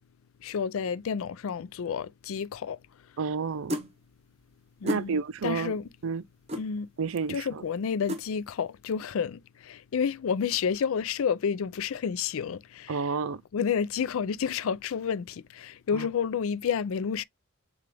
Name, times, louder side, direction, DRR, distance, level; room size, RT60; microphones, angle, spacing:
voice 1, 0.4-2.8 4.8-5.8 6.5-6.9 7.3-12.9 13.5-17.2, left 7 dB, 80° left, 0.4 m, -30 dB
voice 2, 3.2-3.9 4.8-6.2 7.0-7.6 12.9-13.4 15.9-16.1, right 5 dB, 75° right, 0.5 m, -31 dB
sound 1, 3.7-3.9 4.9-5.1 6.5-6.7 8.1-8.2, left 1 dB, 30° right, 0.7 m, -31 dB
6.8 x 2.4 x 3.3 m
head